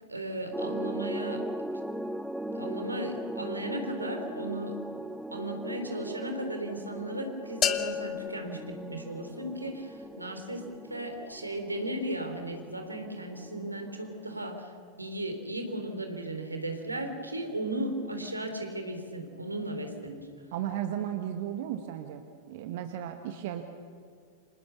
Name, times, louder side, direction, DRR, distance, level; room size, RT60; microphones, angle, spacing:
voice 1, 0.1-1.4 2.5-4.8 5.3-14.7 15.0-20.3, right 1 dB, 85° right, 5 dB, 3.8 m, -36 dB
sound 1, 0.5-14.5, right 1 dB, ahead, 1.0 m, -39 dB
sound 2, 7.6-9.6, left 9 dB, 30° left, 1.5 m, -32 dB
voice 2, 20.5-22.2 22.5-23.6, right 10 dB, 50° right, 6 dB, 1.6 m, -34 dB
29.5 x 27.0 x 7.0 m, 2.2 s
figure-of-eight pair, 90°, 0 cm